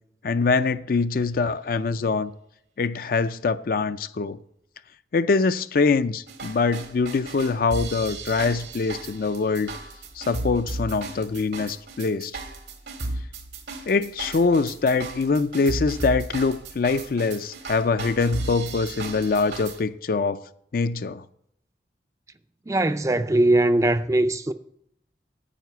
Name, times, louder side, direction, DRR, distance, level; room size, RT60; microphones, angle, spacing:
voice 1, 0.2-2.3 2.8-4.4 5.1-9.7 10.2-12.3 13.9-20.4 20.7-21.2, left 4 dB, 55° left, 0.4 m, -24 dB
sound 1, 6.3-19.8, right 2 dB, 85° right, 1.9 m, -35 dB
voice 2, 22.7-24.5, right 1 dB, 15° right, 0.4 m, -20 dB
9.3 x 5.9 x 8.2 m
head